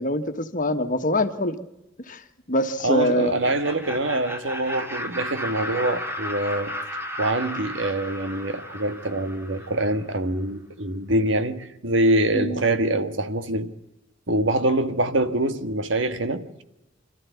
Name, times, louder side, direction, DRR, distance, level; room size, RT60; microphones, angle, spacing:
voice 1, 0.0-1.6 2.1-2.2 2.5-3.4 12.3-12.6, left 1 dB, 40° left, 1.6 m, -24 dB
voice 2, 2.8-6.7 7.2-13.7 14.3-16.6, right 1 dB, 70° right, 1.6 m, -24 dB
Laughter, 3.2-10.0, equal, 10° right, 2.2 m, -34 dB
27.0 x 14.0 x 8.4 m
head